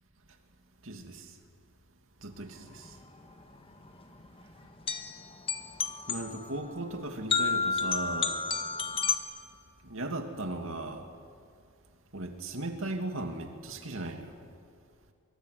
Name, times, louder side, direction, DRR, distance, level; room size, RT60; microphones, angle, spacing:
voice 1, 0.8-1.3 2.2-3.0 6.1-8.4 9.8-11.1 12.1-14.3, right 2 dB, 65° right, 5 dB, 2.7 m, -37 dB
sound 1, 2.7-9.2, left 5 dB, 25° left, 1.6 m, -31 dB
24.0 x 23.5 x 9.5 m, 2.2 s
head